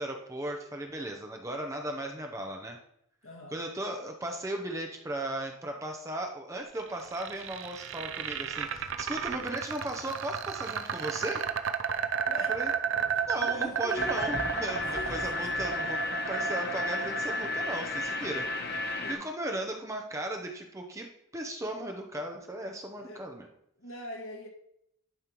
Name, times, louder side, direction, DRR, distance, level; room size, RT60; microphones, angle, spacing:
voice 1, 0.0-2.8 3.5-11.4 12.5-12.7 13.3-18.5 19.1-21.1 21.3-23.5, right 1 dB, 15° right, 2 dB, 0.6 m, -36 dB
voice 2, 3.2-3.6 12.2-12.6 13.4-14.1 14.8-15.5 18.9-19.2 22.8-23.4 23.8-24.5, left 1 dB, 70° left, 1 dB, 1.9 m, -43 dB
sound 1, 6.8-18.8, right 7 dB, 60° right, 0.5 m, -33 dB
Walk footsteps, 8.1-8.4 8.7-10.1 10.4-11.7 12.0-15.5 15.8-16.1 16.5-16.6, right 1 dB, 85° right, 2.5 m, -56 dB
sound 2, 13.9-19.1, left 2 dB, 45° left, 1.0 m, -33 dB
11.0 x 5.4 x 3.0 m, 0.76 s
head